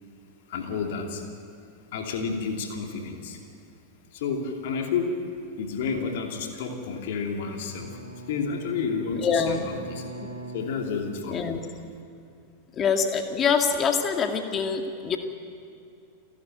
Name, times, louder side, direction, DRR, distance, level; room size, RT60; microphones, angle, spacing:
voice 1, 0.5-1.2 1.9-3.4 4.1-5.2 5.6-8.0 8.3-10.0 10.5-11.5, left 5 dB, 55° left, 3 dB, 2.8 m, -30 dB
Bowed string instrument, 7.2-11.6, right 2 dB, 85° left, 2.3 m, -43 dB
voice 2, 9.1-9.6 10.2-10.3 11.3-11.6 12.7-15.2, left 6 dB, 25° left, 5 dB, 2.1 m, -25 dB
29.0 x 12.0 x 9.2 m, 2.5 s
figure-of-eight pair, 90°, 0 cm